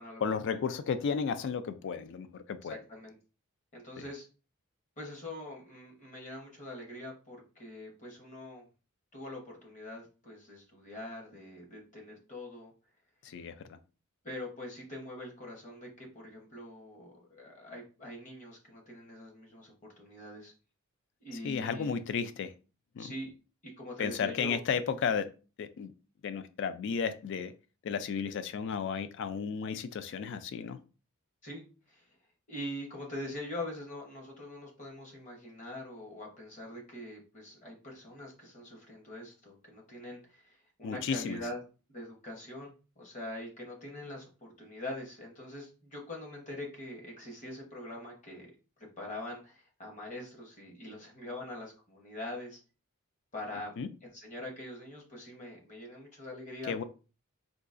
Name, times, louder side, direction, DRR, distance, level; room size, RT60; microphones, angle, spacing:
voice 1, 0.2-2.8 4.0-4.1 13.2-13.8 21.4-22.5 22.9-23.1 24.0-25.3 25.6-25.9 26.2-27.5 27.8-30.8 40.8-41.4 53.8-53.9 56.7-56.8, left 6 dB, 55° left, 12 dB, 0.3 m, -33 dB
voice 2, 2.6-3.2 3.7-4.2 5.0-8.7 9.1-12.7 14.2-20.5 21.2-22.0 23.0-23.3 23.6-24.6 31.4-32.1 32.5-41.6 41.9-48.5 48.8-52.6 53.3-53.8 54.1-56.8, left 1 dB, 35° left, 0 dB, 1.0 m, -43 dB
3.8 x 2.3 x 2.5 m, 0.34 s
head